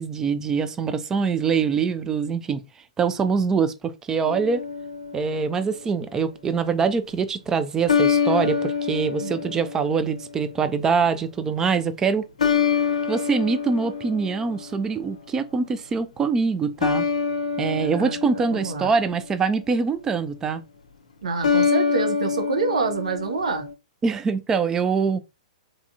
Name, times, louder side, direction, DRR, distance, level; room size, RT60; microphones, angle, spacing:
voice 1, 0.0-2.6 3.0-4.6 5.1-12.3 13.1-17.0 17.6-20.6 24.0-25.2, right 5 dB, 15° right, 0.3 m, -24 dB
sound 1, 4.2-5.6 7.9-10.4 12.4-15.0 16.8-19.3 21.4-23.7, left 6 dB, 65° left, 0.6 m, -25 dB
voice 2, 17.8-18.9 21.2-23.7, right 4 dB, 60° right, 0.9 m, -27 dB
3.5 x 3.1 x 2.5 m
figure-of-eight pair, 110°, 4 cm